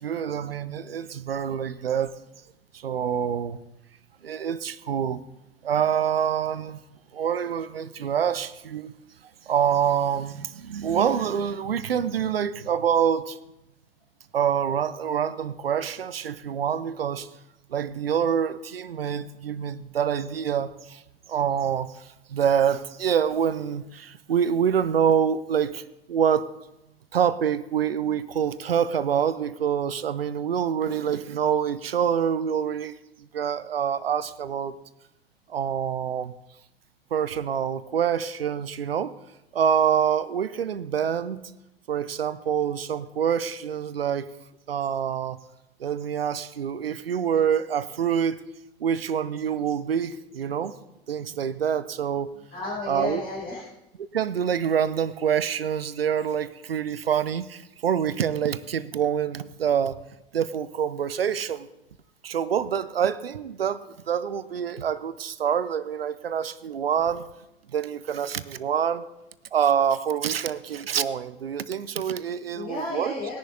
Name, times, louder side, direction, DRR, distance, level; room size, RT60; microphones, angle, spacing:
voice 1, 0.0-2.1 2.7-3.6 4.2-5.2 5.6-6.8 7.1-8.9 9.5-13.4 14.3-17.3 17.7-21.0 21.3-25.8 26.1-26.4 27.1-32.9 33.3-34.7 35.5-36.3 37.1-39.1 39.5-41.4 41.9-44.3 44.7-45.4 45.8-48.4 48.8-50.7 51.1-52.3 52.9-53.2 54.1-60.0 60.3-61.7 62.2-63.8 64.1-67.3 67.7-69.0 69.5-73.1, right 8 dB, 80° right, 0.6 m, -26 dB
voice 2, 52.5-53.6 72.5-73.4, left 2 dB, 45° left, 5.4 m, -32 dB
20.0 x 10.5 x 2.6 m
figure-of-eight pair, 80°, 29 cm